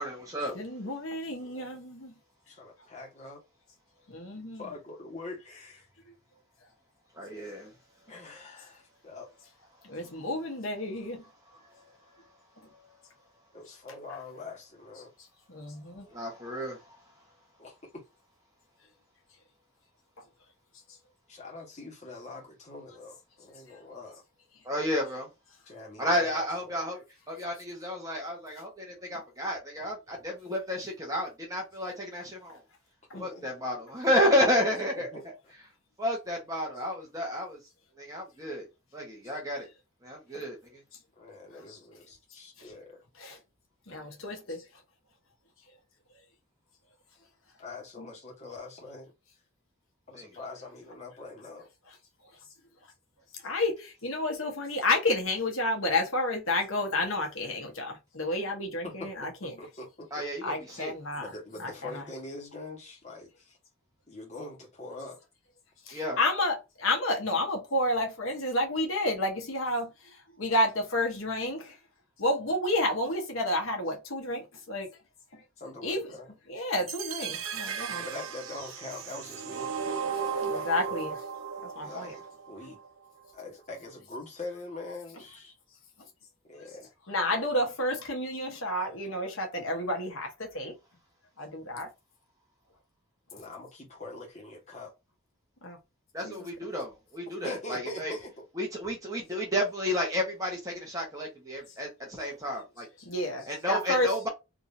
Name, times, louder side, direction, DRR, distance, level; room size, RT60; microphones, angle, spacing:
voice 1, 0.0-0.6 7.1-7.7 16.1-16.8 24.6-25.3 26.0-32.6 33.2-35.3 36.0-37.6 38.0-38.7 38.9-39.7 40.0-40.8 50.1-50.3 60.1-60.9 65.9-66.2 96.1-98.1 98.5-102.8 103.5-104.3, equal, 15° right, 1.2 m, -31 dB
voice 2, 0.5-2.1 4.1-4.6 9.8-11.2 15.5-16.0 33.1-33.3 43.2-43.4 43.9-44.6 48.0-48.1 53.4-59.5 60.4-61.3 61.6-62.0 65.9-69.9 70.4-71.7 72.2-74.9 75.8-76.1 76.5-78.0 80.4-81.1 81.8-82.1 87.1-90.7 91.4-91.9 95.6-95.8 96.2-96.3 103.0-104.1, left 1 dB, 85° left, 1.3 m, -30 dB
voice 3, 1.4-1.8 2.5-3.4 4.6-5.9 8.1-9.3 13.5-15.1 17.6-18.0 21.3-24.2 25.7-26.8 33.1-33.5 34.9-35.2 41.2-43.0 47.6-49.1 50.1-51.7 58.8-60.3 61.1-63.6 64.1-65.2 75.6-76.3 78.0-79.8 80.5-81.2 81.8-82.8 83.3-85.5 86.5-86.9 91.7-91.9 93.3-94.9 97.3-98.4, left 2 dB, 35° left, 1.4 m, -43 dB
sound 1, 76.9-82.9, right 6 dB, 90° right, 0.6 m, -35 dB
3.6 x 2.8 x 2.7 m
head